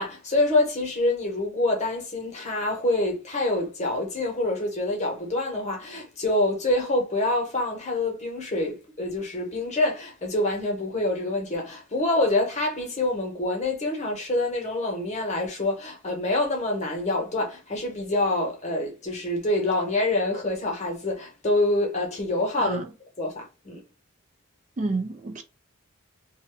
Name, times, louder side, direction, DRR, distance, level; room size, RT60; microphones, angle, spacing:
voice 1, 0.0-22.8 23.2-23.8, left 2 dB, 35° left, 0.9 m, -26 dB
voice 2, 24.8-25.4, right 3 dB, 35° right, 0.4 m, -29 dB
2.6 x 2.3 x 3.3 m
head